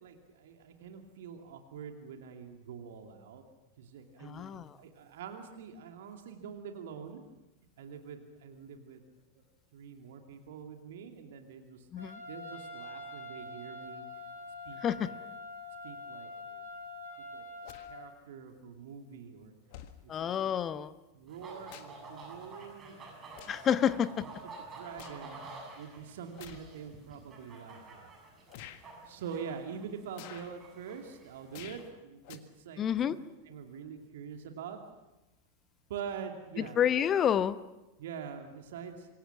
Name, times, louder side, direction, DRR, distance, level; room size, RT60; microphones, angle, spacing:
voice 1, 0.0-3.4 3.8-7.2 7.8-9.0 9.3-9.4 9.7-11.9 12.3-14.1 14.6-15.2 15.8-16.6 17.3-19.5 20.0-20.8 21.1-23.0 23.8-24.0 24.4-25.4 25.8-28.1 29.0-33.1 33.4-34.8 35.9-36.8 38.0-39.1, right 7 dB, 55° right, 4 dB, 2.5 m, -45 dB
voice 2, 4.2-4.7 11.9-12.2 14.8-15.1 20.1-20.9 23.5-24.1 32.8-33.2 36.6-37.6, left 9 dB, 25° left, 15 dB, 0.9 m, -29 dB
Trumpet, 12.0-18.0, left 2 dB, 85° right, 8.0 m, -45 dB
sound 1, 17.6-17.9 19.0-19.1 19.7-20.0 21.2-22.1 22.4-22.7 23.3-23.7 24.2-25.2 26.3-26.7 27.4-27.5 28.5-28.8 30.1-30.6 31.5-31.9 32.2-32.4, left 12 dB, 45° left, 1.7 m, -50 dB
sound 2, 21.3-31.9, right 3 dB, 25° right, 6.8 m, -50 dB
26.5 x 23.0 x 5.9 m, 1.0 s
figure-of-eight pair, 90°, 0 cm